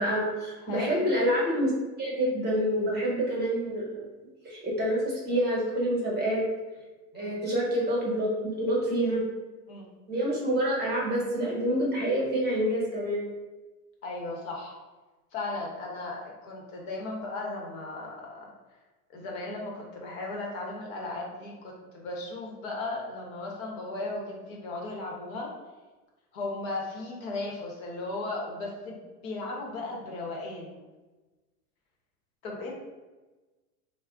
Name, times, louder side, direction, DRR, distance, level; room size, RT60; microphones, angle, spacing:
voice 1, 0.0-1.7 2.0-3.9 4.4-6.4 7.1-9.2 10.1-13.2, equal, 20° right, -4 dB, 1.0 m, -27 dB
voice 2, 0.7-1.1 7.1-7.4 9.7-9.9 14.0-14.8 15.3-18.4 19.1-25.5 26.3-30.8 32.4-32.7, left 2 dB, 60° left, -2 dB, 0.9 m, -36 dB
2.3 x 2.1 x 3.5 m, 1.2 s
hypercardioid pair, 95°, 46 cm